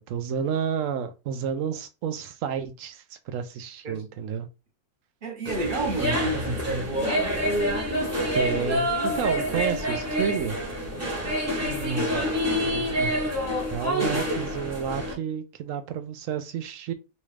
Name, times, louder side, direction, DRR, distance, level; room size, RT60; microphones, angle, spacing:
voice 1, 0.1-4.5 8.3-10.6 13.7-16.9, right 8 dB, 65° right, 0.9 m, -30 dB
voice 2, 5.2-7.3 11.6-12.4 12.6-13.2 14.0-14.2, right 2 dB, 40° right, 0.9 m, -31 dB
sound 1, 5.4-15.1, equal, 10° right, 0.8 m, -27 dB
4.1 x 2.4 x 3.2 m
omnidirectional pair, 1.6 m